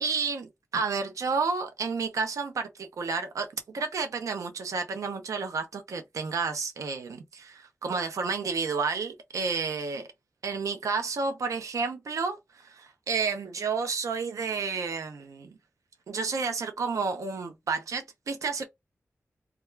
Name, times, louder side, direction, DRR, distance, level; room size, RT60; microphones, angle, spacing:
voice 1, 0.0-3.5 3.7-10.0 10.4-15.5 16.1-18.7, right 4 dB, 90° right, 0.4 m, -31 dB
2.3 x 2.2 x 3.0 m
wide cardioid pair, 75°, 5 cm